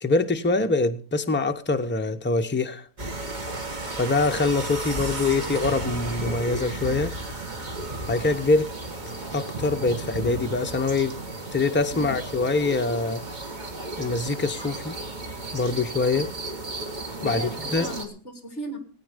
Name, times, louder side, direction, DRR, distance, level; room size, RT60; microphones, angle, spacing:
voice 1, 0.0-2.8 4.0-7.2 8.1-8.7 9.3-11.2 11.5-13.2 14.0-15.0 15.5-16.3 17.2-17.4 17.7-17.9, left 3 dB, 10° left, 0.5 m, -24 dB
sound 1, 3.0-18.1, right 2 dB, 30° right, 1.7 m, -34 dB
voice 2, 17.2-18.8, right 1 dB, 50° left, 2.8 m, -36 dB
18.5 x 9.0 x 5.1 m
omnidirectional pair, 1.6 m